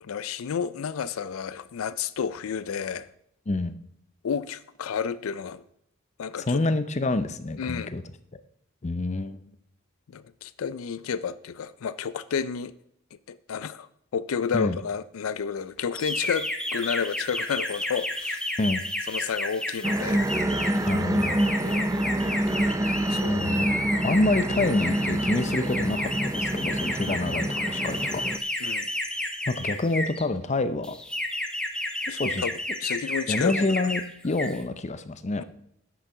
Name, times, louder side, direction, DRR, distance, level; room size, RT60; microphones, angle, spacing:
voice 1, 0.0-3.1 4.2-5.6 6.2-6.6 7.6-7.9 10.1-12.7 13.3-13.9 14.1-18.5 19.1-20.2 21.6-21.9 22.6-23.8 28.6-28.9 32.1-32.5 32.8-33.9, left 7 dB, 80° left, 0.4 m, -31 dB
voice 2, 3.5-3.8 6.4-8.0 8.8-9.4 14.5-14.8 18.6-18.8 20.9-21.5 23.3-23.8 24.0-28.2 29.5-31.0 32.2-32.4 33.3-35.4, left 2 dB, 35° left, 0.6 m, -27 dB
sound 1, 15.9-30.2 30.8-34.0 34.3-34.6, left 1 dB, 5° left, 0.8 m, -32 dB
sound 2, 19.8-28.4, right 1 dB, 15° right, 0.4 m, -27 dB
10.5 x 6.4 x 5.5 m
head